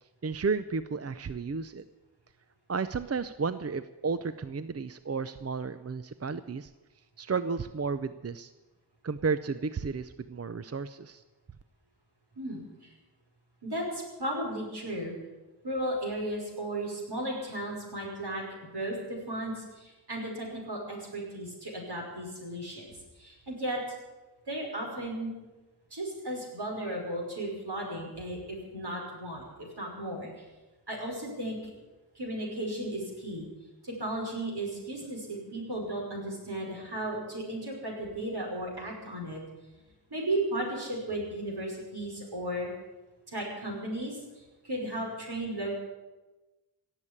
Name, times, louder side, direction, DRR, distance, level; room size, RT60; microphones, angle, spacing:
voice 1, 0.2-1.8 2.7-6.7 7.2-8.5 9.0-11.2, right 5 dB, 40° right, 12 dB, 0.6 m, -32 dB
voice 2, 12.4-12.9 13.6-15.2 15.6-18.4 18.7-23.8 24.5-25.3 25.9-30.4 30.9-31.6 32.2-33.5 33.8-39.4 40.1-42.7 43.3-44.2 44.6-45.7, right 1 dB, 75° right, -1 dB, 5.5 m, -35 dB
17.5 x 7.4 x 9.7 m, 1.1 s
wide cardioid pair, 60°, 40 cm